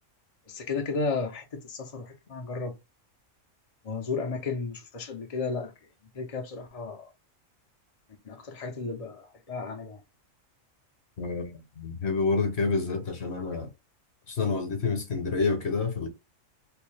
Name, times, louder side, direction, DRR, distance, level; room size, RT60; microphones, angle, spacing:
voice 1, 0.5-2.7 3.8-5.7 6.1-7.1 8.2-10.0, left 4 dB, 35° left, 0.6 m, -33 dB
voice 2, 11.2-11.5 11.8-13.7 14.3-16.1, left 4 dB, 55° left, 1.3 m, -28 dB
3.4 x 2.7 x 3.2 m
omnidirectional pair, 1.4 m